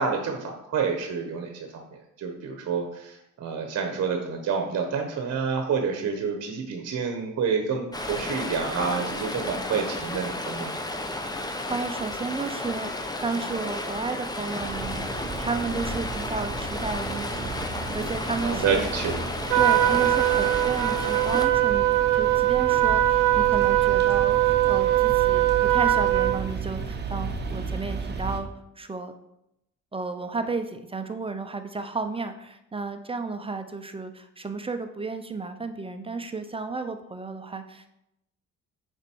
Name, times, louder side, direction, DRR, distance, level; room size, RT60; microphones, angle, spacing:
voice 1, 0.0-10.7 18.4-19.1, right 5 dB, 60° right, 4 dB, 1.1 m, -28 dB
Stream, 7.9-21.5, left 2 dB, 15° left, 0.9 m, -33 dB
voice 2, 11.7-15.1 15.4-18.9 19.5-28.5 28.8-29.1 29.9-37.9, right 4 dB, 20° right, 8 dB, 0.6 m, -33 dB
sound 1, 14.6-28.4, right 4 dB, 35° right, 1.0 m, -34 dB
Trumpet, 19.5-26.4, right 14 dB, 85° right, 0.6 m, -21 dB
6.6 x 5.2 x 4.6 m, 0.83 s
cardioid pair, 90°, 30 cm